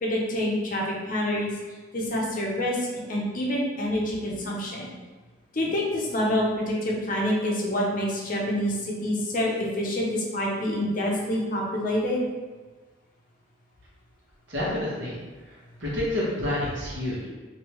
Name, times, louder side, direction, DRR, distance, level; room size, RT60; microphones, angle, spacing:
voice 1, 0.0-1.5 1.9-4.9 5.5-12.2, left 1 dB, 40° left, -3 dB, 0.6 m, -27 dB
voice 2, 14.5-15.2 15.5-17.3, left 1 dB, 65° right, -7 dB, 1.1 m, -29 dB
3.3 x 2.6 x 3.0 m, 1.3 s
head